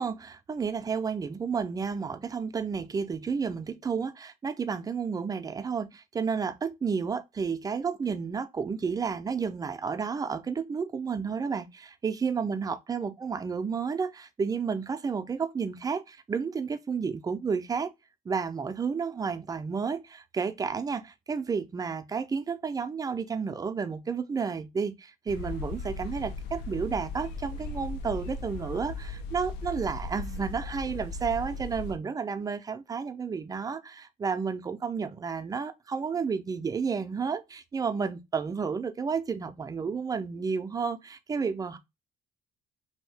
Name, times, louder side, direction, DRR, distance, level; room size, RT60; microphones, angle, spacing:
voice 1, 0.0-17.9 18.3-41.8, right 5 dB, 20° right, 0.4 m, -31 dB
sound 1, 25.3-32.0, left 3 dB, 90° left, 0.5 m, -37 dB
2.7 x 2.6 x 3.2 m
cardioid pair, 110°, 17 cm